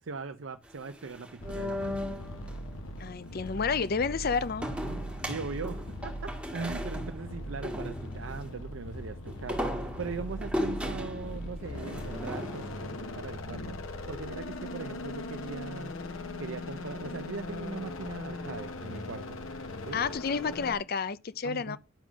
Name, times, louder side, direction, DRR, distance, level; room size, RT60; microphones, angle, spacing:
voice 1, 0.0-2.0 5.2-15.9 16.4-19.4 19.8-20.0 21.4-21.8, right 4 dB, 70° right, 0.6 m, -40 dB
sound 1, 0.7-2.6 4.6-8.5 9.3-12.8, equal, 5° right, 1.8 m, -37 dB
sound 2, 1.4-20.8, left 1 dB, 85° left, 1.2 m, -39 dB
voice 2, 3.0-4.7 19.9-21.8, left 5 dB, 45° left, 0.5 m, -30 dB
10.0 x 3.8 x 6.1 m
head